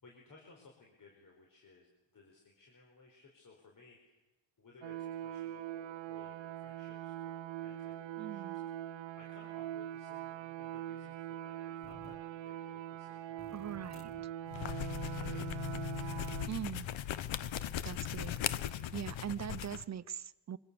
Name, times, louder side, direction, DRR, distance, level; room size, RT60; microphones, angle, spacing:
voice 1, 0.0-4.2 4.6-8.5 9.2-12.2 12.4-14.2 15.1-16.3, left 3 dB, 45° left, 0 dB, 4.8 m, -60 dB
sound 1, 4.8-16.5, right 12 dB, 75° right, 0.9 m, -42 dB
voice 2, 8.2-8.6 13.5-14.1 16.5-16.9 17.8-18.4 18.9-20.6, right 9 dB, 35° right, 17 dB, 0.8 m, -41 dB
sound 2, 11.8-12.2 13.4-14.3 15.6-16.8 17.9-18.9, left 4 dB, 30° left, 1.5 m, -55 dB
sound 3, 14.5-19.8, left 10 dB, 85° left, 1.1 m, -38 dB
25.0 x 24.5 x 7.0 m, 1.0 s
cardioid pair, 125°, 45 cm